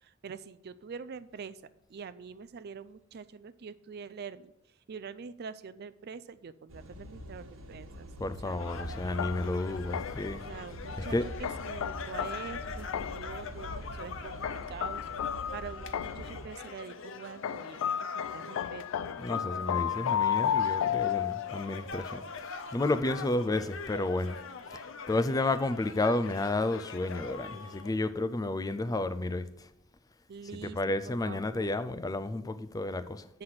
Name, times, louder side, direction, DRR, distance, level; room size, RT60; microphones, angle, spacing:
voice 1, 0.0-1.6 1.9-4.5 4.9-8.1 8.4-8.6 10.5-19.2 23.4-23.7 30.3-31.8 33.3-33.4, right 6 dB, 50° right, 0.4 m, -45 dB
sound 1, 6.7-16.5, equal, 80° right, 1.3 m, -44 dB
voice 2, 8.2-10.4 11.0-11.3 19.2-22.2 22.7-24.4 25.1-29.5 30.5-33.2, left 2 dB, 20° left, 0.4 m, -31 dB
sound 2, 8.5-27.9, left 4 dB, 65° left, 0.7 m, -43 dB
sound 3, 9.2-10.4 11.4-13.4 14.4-16.4 17.4-21.7, left 9 dB, 90° left, 0.3 m, -33 dB
7.7 x 5.7 x 6.4 m
head